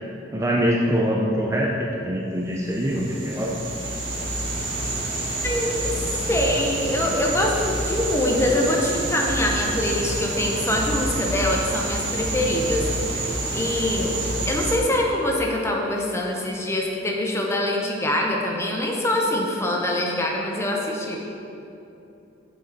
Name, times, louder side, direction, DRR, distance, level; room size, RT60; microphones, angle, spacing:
voice 1, 0.3-3.5, equal, 15° right, -2 dB, 0.4 m, -23 dB
sound 1, 2.6-14.8, right 1 dB, 90° right, 1.4 m, -28 dB
voice 2, 5.4-5.9 6.3-14.2 14.5-21.2, left 1 dB, 15° left, -1 dB, 0.8 m, -24 dB
6.7 x 6.4 x 4.1 m, 2.9 s
head